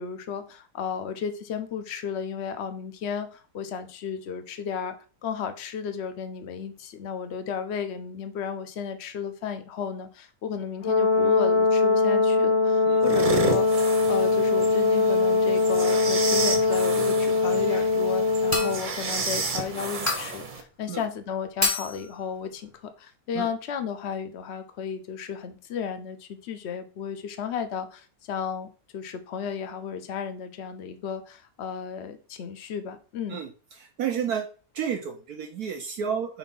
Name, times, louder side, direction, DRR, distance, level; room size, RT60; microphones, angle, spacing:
voice 1, 0.0-5.0 5.2-13.7 14.1-33.4, left 7 dB, 65° left, 9 dB, 0.6 m, -34 dB
Brass instrument, 10.8-18.8, left 3 dB, 90° left, 2.3 m, -22 dB
sound 1, 13.0-20.6, right 3 dB, 40° right, 0.7 m, -32 dB
sound 2, 18.5-19.0 20.1-20.4 21.6-22.1, left 2 dB, 10° left, 1.0 m, -28 dB
voice 2, 33.3-34.5 34.7-36.4, right 7 dB, 70° right, 6 dB, 1.0 m, -31 dB
4.3 x 4.1 x 5.3 m, 0.37 s
omnidirectional pair, 2.1 m